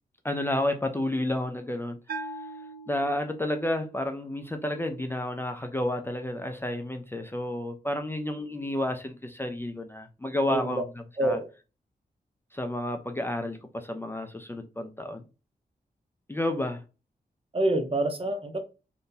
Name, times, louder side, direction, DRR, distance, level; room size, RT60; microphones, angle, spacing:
voice 1, 0.2-2.2 2.9-10.8 11.2-11.4 12.5-15.2 16.3-16.8, left 1 dB, 15° left, 0.4 m, -31 dB
Bell, 2.1-3.7, right 2 dB, 75° right, 0.7 m, -40 dB
voice 2, 10.5-10.8 11.2-11.5 17.5-18.6, right 1 dB, 35° right, 0.6 m, -27 dB
2.7 x 2.6 x 3.7 m
wide cardioid pair, 150°, 16 cm